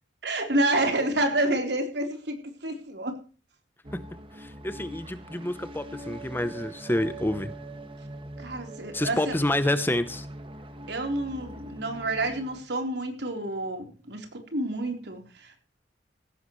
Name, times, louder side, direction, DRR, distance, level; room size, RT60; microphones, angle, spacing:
voice 1, 0.2-3.2 8.4-9.3 10.9-15.6, right 1 dB, 65° right, 4 dB, 3.8 m, -29 dB
sound 1, 3.8-12.6, right 1 dB, 30° right, 1.8 m, -42 dB
voice 2, 4.3-7.5 8.9-10.3, left 1 dB, 10° left, 12 dB, 0.8 m, -28 dB
16.5 x 15.5 x 3.2 m, 0.35 s
head